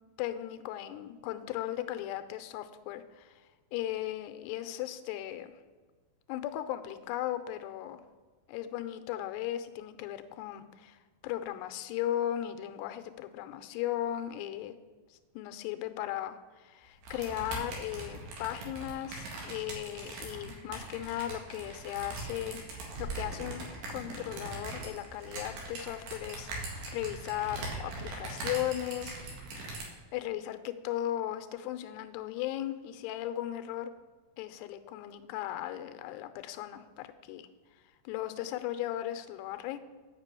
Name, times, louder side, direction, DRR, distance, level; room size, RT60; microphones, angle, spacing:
voice 1, 0.2-3.4 3.7-5.5 6.3-8.0 8.5-14.8 15.1-22.6 23.0-23.6 23.9-29.2 30.1-33.9 34.4-37.5 38.1-39.8, left 12 dB, 80° left, 10 dB, 2.7 m, -37 dB
sound 1, 17.0-29.8, right 2 dB, 80° right, 4.1 m, -41 dB
8.9 x 5.8 x 8.2 m, 1.4 s
omnidirectional pair, 4.9 m